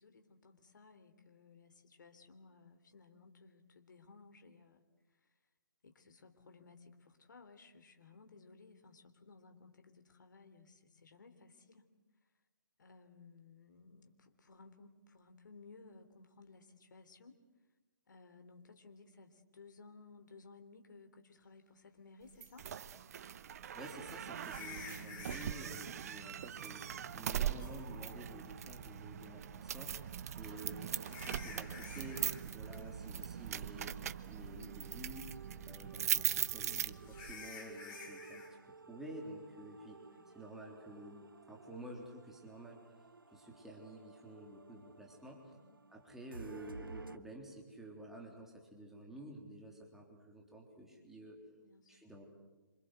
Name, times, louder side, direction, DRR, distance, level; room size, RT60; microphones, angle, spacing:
voice 1, 0.0-4.8 5.1-5.3 5.8-11.9 12.8-17.4 18.1-22.7 24.8-25.1 29.8-30.3 35.4-35.7 40.0-40.3 45.5-45.8 51.6-52.1, left 4 dB, 60° left, 7 dB, 3.4 m, -59 dB
sound 1, 22.4-37.4, right 9 dB, 45° right, 1.1 m, -40 dB
sound 2, 22.5-22.6 24.4-25.8 27.6-27.7 30.2-32.4 32.7-33.0 33.4-33.5 34.1-34.2 37.0-38.5, left 5 dB, 25° left, 7.2 m, -51 dB
voice 2, 23.7-35.4 35.7-40.0 40.3-42.8 43.3-45.5 45.9-51.4 51.9-52.2, right 1 dB, 5° right, -1 dB, 3.7 m, -51 dB
sound 3, 34.5-47.2, right 3 dB, 80° right, 1.5 m, -55 dB
27.0 x 27.0 x 8.1 m, 1.2 s
figure-of-eight pair, 135°, 11 cm